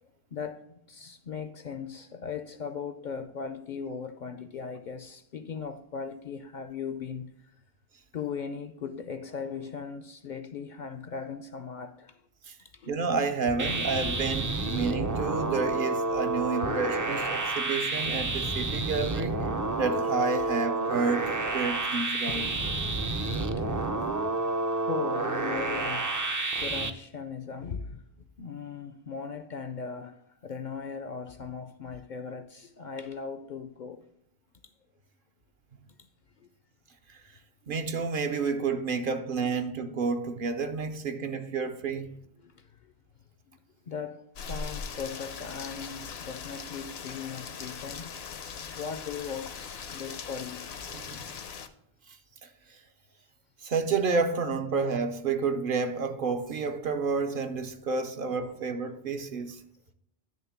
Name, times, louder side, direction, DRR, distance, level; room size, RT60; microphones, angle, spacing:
voice 1, 0.0-7.5 8.1-12.2 12.7-12.9 13.5-14.2 16.6-16.8 22.3-22.9 23.2-23.7 24.8-26.1 26.6-34.1 36.4-36.5 42.4-42.9 43.9-48.2 48.7-50.7 52.1-52.2, left 6 dB, 55° left, 0.6 m, -38 dB
voice 2, 12.9-19.5 19.8-22.5 37.1-37.2 37.7-42.1 50.9-51.3 52.4-52.5 53.6-59.6, right 4 dB, 60° right, 0.8 m, -30 dB
sound 1, 13.6-26.9, right 3 dB, 30° right, 0.4 m, -29 dB
Rain, 44.4-51.7, left 6 dB, 75° left, 1.0 m, -40 dB
10.0 x 3.6 x 5.8 m
omnidirectional pair, 1.1 m